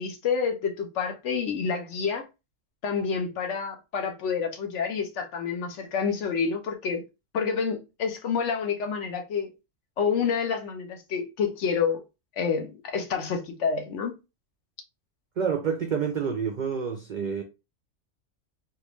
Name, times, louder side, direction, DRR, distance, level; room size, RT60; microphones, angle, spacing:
voice 1, 0.0-2.2 2.8-7.0 7.3-9.5 10.0-12.0 12.4-14.1, left 6 dB, 70° left, 1.1 m, -28 dB
voice 2, 15.4-17.4, right 6 dB, 65° right, 0.4 m, -28 dB
3.5 x 2.4 x 3.0 m
omnidirectional pair, 1.3 m